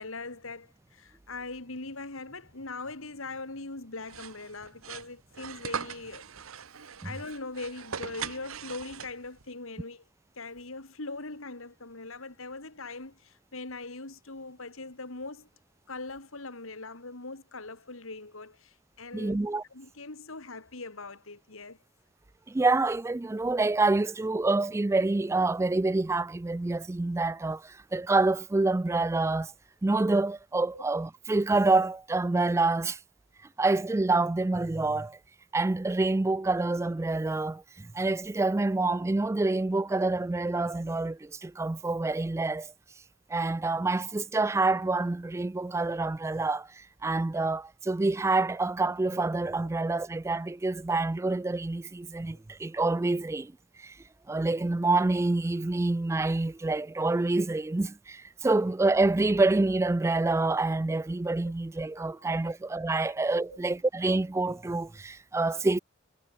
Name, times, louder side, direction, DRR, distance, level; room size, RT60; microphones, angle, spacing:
voice 1, 0.0-6.2 6.8-10.0 10.3-15.5 15.9-19.4 19.7-21.8 30.7-30.8 49.6-49.7 62.0-62.5 63.5-63.6, left 3 dB, 70° left, 2.7 m, -41 dB
sound 1, 4.1-9.4, right 7 dB, 75° right, 1.1 m, -40 dB
voice 2, 19.1-19.6 22.5-29.5 29.8-33.0 33.6-35.2 35.5-42.7 43.3-53.5 53.8-54.0 54.3-65.8, right 2 dB, 15° right, 0.3 m, -27 dB
head